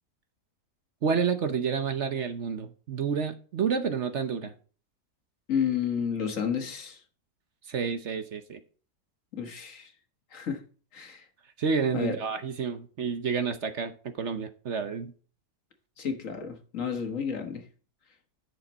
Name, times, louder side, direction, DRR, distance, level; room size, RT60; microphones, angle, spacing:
voice 1, 1.0-4.5 7.7-8.6 11.6-15.1, right 6 dB, 55° right, 1.1 m, -29 dB
voice 2, 5.5-7.0 9.3-9.9 10.3-10.6 10.9-11.2 11.9-12.2 16.0-17.6, left 7 dB, 60° left, 1.7 m, -31 dB
10.5 x 6.7 x 4.0 m
omnidirectional pair, 1.5 m